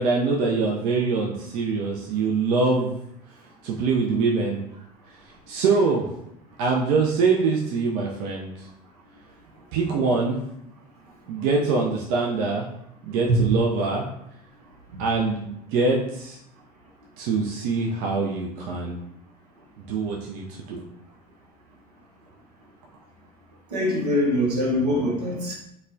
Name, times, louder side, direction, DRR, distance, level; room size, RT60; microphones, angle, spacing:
voice 1, 0.0-2.9 3.6-4.6 5.5-6.1 6.6-8.7 9.7-10.4 11.3-12.7 13.0-14.1 15.0-16.4 17.2-19.0 19.8-20.8, right 4 dB, 65° right, -1 dB, 0.5 m, -24 dB
voice 2, 23.7-25.5, equal, 85° right, -1 dB, 0.8 m, -23 dB
4.0 x 2.1 x 2.6 m, 0.77 s
hypercardioid pair, 70°, 20 cm